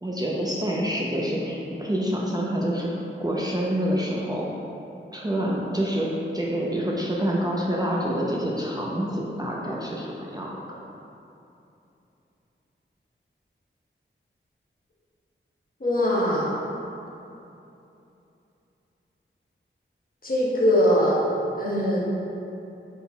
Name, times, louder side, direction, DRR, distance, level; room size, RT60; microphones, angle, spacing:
voice 1, 0.0-4.5 5.1-10.6, equal, 20° right, -4 dB, 0.5 m, -27 dB
voice 2, 15.8-16.5 20.2-22.0, equal, 45° left, -6 dB, 1.0 m, -22 dB
4.2 x 3.9 x 2.2 m, 2.8 s
cardioid pair, 45°, 21 cm